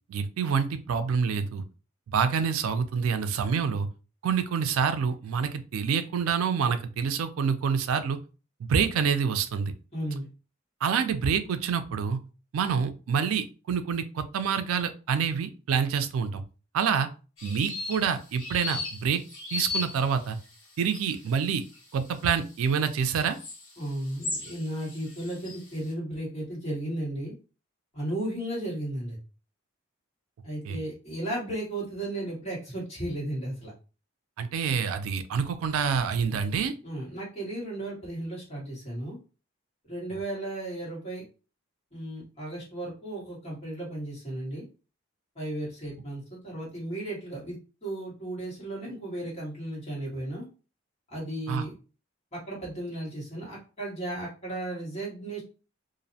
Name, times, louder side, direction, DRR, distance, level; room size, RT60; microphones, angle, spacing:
voice 1, 0.1-1.6 2.1-3.9 4.2-8.2 8.6-9.7 10.8-12.2 12.5-16.4 16.7-17.1 17.4-19.2 19.5-20.4 20.8-21.6 21.9-23.4 30.6-30.8 34.4-36.7 51.5-51.6, right 6 dB, 85° right, 10 dB, 0.3 m, -27 dB
voice 2, 9.9-10.3 23.8-27.3 27.9-29.2 30.4-33.7 36.3-36.4 36.8-39.2 39.8-41.2 41.9-44.6 45.3-50.5 51.1-51.7 52.3-55.4, right 1 dB, 30° left, -5 dB, 1.3 m, -35 dB
sound 1, 17.4-25.8, left 3 dB, 75° left, 0.9 m, -38 dB
2.5 x 2.0 x 2.6 m, 0.34 s
head